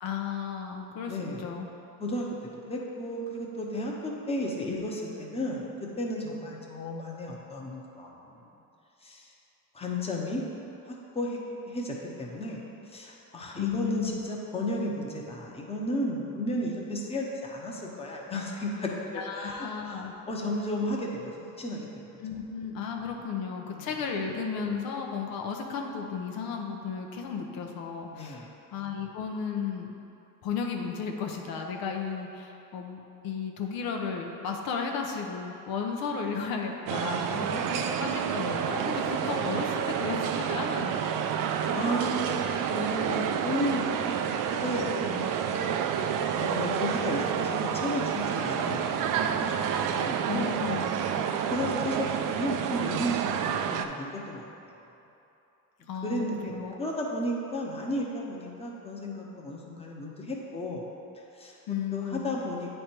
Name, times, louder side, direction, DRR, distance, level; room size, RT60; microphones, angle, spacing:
voice 1, 0.0-1.1 1.4-1.7 4.7-4.8 13.6-14.2 19.1-20.1 22.2-29.9 30.4-41.0 50.3-51.0 55.9-56.8 61.7-62.4, left 6 dB, 90° left, 2 dB, 0.8 m, -34 dB
voice 2, 1.1-1.4 2.0-2.3 2.7-5.7 6.0-8.4 9.0-9.3 9.7-10.4 10.9-11.4 11.7-12.6 12.9-22.1 23.7-23.9 28.1-28.5 37.3-37.4 41.7-44.2 44.6-45.5 46.4-48.8 49.2-50.6 51.5-54.8 56.0-56.4 56.8-60.8 61.1-61.6 61.9-62.8, left 1 dB, 15° left, -2 dB, 0.8 m, -33 dB
sound 1, 36.9-53.9, right 8 dB, 65° right, 0.5 m, -29 dB
9.1 x 3.3 x 4.4 m, 2.8 s
cardioid pair, 125°, 35 cm